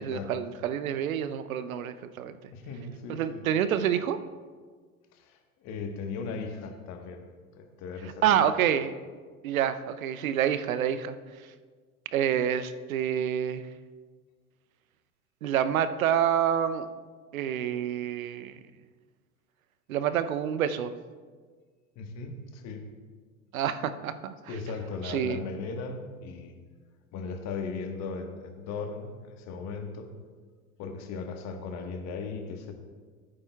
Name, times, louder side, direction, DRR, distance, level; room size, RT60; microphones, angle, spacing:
voice 1, 0.0-2.4 3.1-4.2 8.2-8.9 9.4-11.2 12.1-13.7 15.4-16.9 17.3-18.6 19.9-20.9 23.5-24.3 25.0-25.4, right 9 dB, 70° right, 12 dB, 0.7 m, -27 dB
voice 2, 2.5-3.5 5.1-7.2 7.5-8.4 21.9-22.8 24.5-26.5 27.1-30.1 30.8-32.7, left 4 dB, 40° left, 5 dB, 1.3 m, -37 dB
14.5 x 8.8 x 2.3 m, 1.5 s
hypercardioid pair, 90°, 43 cm